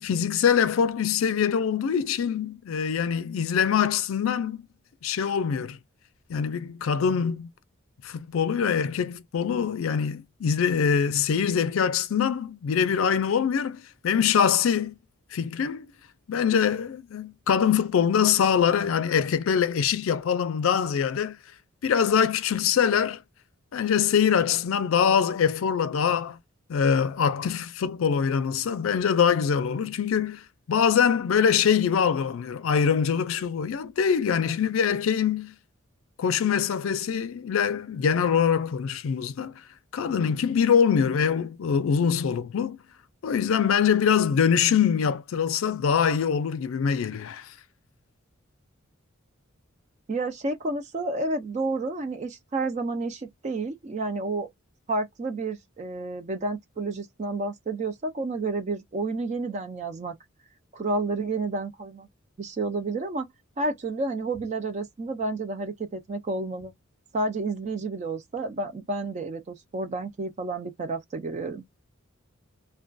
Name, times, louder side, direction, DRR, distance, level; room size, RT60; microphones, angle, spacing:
voice 1, 0.0-4.6 5.0-5.8 6.3-7.5 8.0-14.9 15.3-15.9 16.3-21.4 21.8-23.2 23.7-26.4 26.7-35.5 36.2-39.5 39.9-42.8 43.2-47.5, left 7 dB, 75° left, 0.4 m, -24 dB
voice 2, 50.1-54.5 54.9-60.1 60.7-62.1 62.4-63.3 63.6-66.7 67.1-71.8, right 3 dB, 35° right, 0.4 m, -30 dB
2.3 x 2.2 x 2.5 m
head